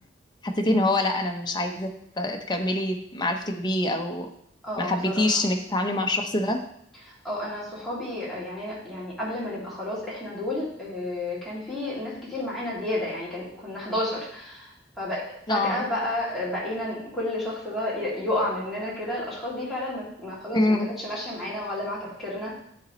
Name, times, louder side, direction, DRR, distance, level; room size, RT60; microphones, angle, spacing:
voice 1, 0.4-1.9 2.2-4.3 4.8-6.6 15.5-15.8 20.5-20.9, left 1 dB, 25° left, 3 dB, 0.7 m, -25 dB
voice 2, 4.6-5.4 7.0-22.6, left 1 dB, ahead, -8 dB, 2.4 m, -31 dB
10.0 x 4.2 x 3.0 m, 0.71 s
head